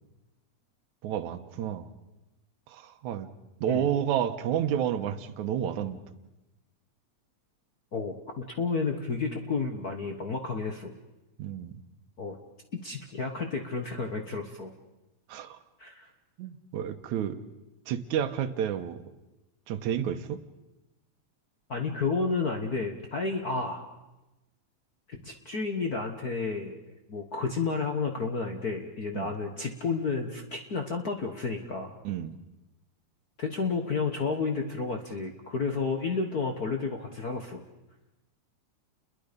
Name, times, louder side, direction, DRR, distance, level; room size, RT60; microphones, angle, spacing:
voice 1, 1.0-1.9 2.7-3.3 3.6-6.0 11.4-11.7 15.3-15.6 16.4-17.4 17.9-19.0 19.7-20.4 29.1-29.3 32.0-32.3, right 9 dB, 80° right, 10 dB, 2.4 m, -30 dB
voice 2, 7.9-10.9 12.2-12.4 12.7-14.7 15.8-16.1 21.7-23.8 25.1-26.8 27.1-31.9 33.4-37.6, left 4 dB, 45° left, 4 dB, 1.2 m, -31 dB
29.5 x 22.0 x 5.2 m, 1.0 s
omnidirectional pair, 3.4 m